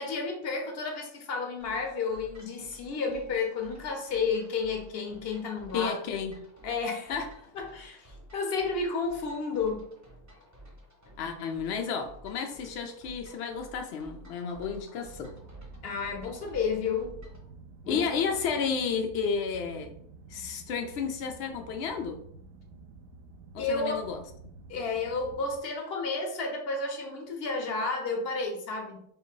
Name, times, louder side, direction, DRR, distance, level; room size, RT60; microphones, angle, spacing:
voice 1, 0.0-6.0 6.6-7.1 7.5-9.9 15.8-17.2 17.8-18.1 23.6-24.0 24.7-29.0, left 4 dB, 50° left, 2 dB, 0.9 m, -31 dB
sound 1, 1.6-17.5, right 1 dB, 15° right, 0.8 m, -52 dB
voice 2, 5.7-6.3 7.1-7.3 11.2-15.3 17.9-20.0 20.3-22.2 23.5-24.2, left 6 dB, 85° left, 4 dB, 0.5 m, -32 dB
sound 2, 15.1-25.6, right 4 dB, 70° right, 0.9 m, -50 dB
3.3 x 2.7 x 4.4 m, 0.70 s
omnidirectional pair, 1.7 m